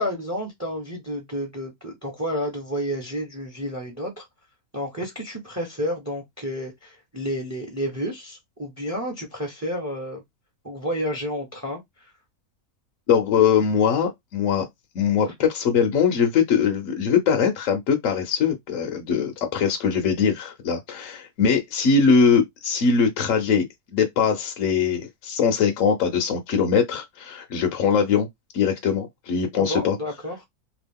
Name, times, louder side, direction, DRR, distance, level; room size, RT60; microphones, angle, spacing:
voice 1, 0.0-4.3 4.7-10.2 10.6-12.1 15.3-15.4 29.5-30.4, equal, 15° right, 0.6 m, -30 dB
voice 2, 13.1-14.7 14.9-23.7 23.9-28.3 28.5-30.0, left 6 dB, 65° left, 1.0 m, -21 dB
3.0 x 2.3 x 3.4 m
omnidirectional pair, 1.6 m